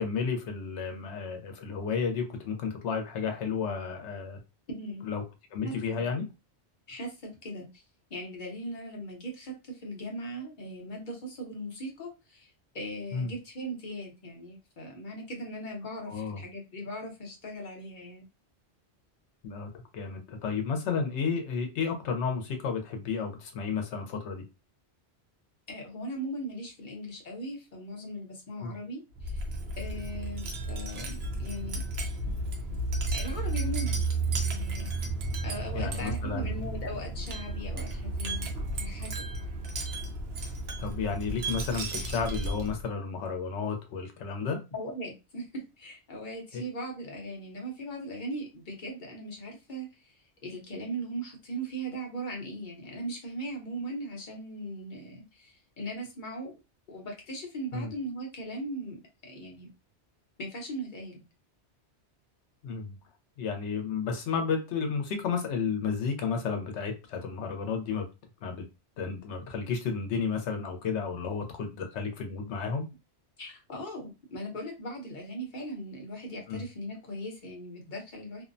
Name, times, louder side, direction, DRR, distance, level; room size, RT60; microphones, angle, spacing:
voice 1, 0.0-4.4 5.0-5.2 5.5-6.2 13.1-13.3 16.1-16.4 19.4-24.4 28.6-28.7 35.7-36.6 40.8-44.6 46.5-46.6 57.7-57.9 62.6-63.0 63.4-68.0 68.4-68.6 69.0-72.9 76.5-76.6, left 5 dB, 90° left, 0.9 m, -32 dB
voice 2, 4.7-5.0 5.6-6.0 6.9-7.8 8.1-12.5 12.7-18.3 25.7-29.4 29.8-31.8 33.1-34.9 35.4-38.5 38.8-39.3 44.7-45.5 45.8-50.1 50.4-56.5 56.9-59.7 60.4-61.2 73.4-78.4, right 1 dB, 50° left, 0.9 m, -39 dB
Wind chime, 29.1-42.9, right 2 dB, 70° right, 0.8 m, -33 dB
2.6 x 2.0 x 2.5 m
omnidirectional pair, 1.1 m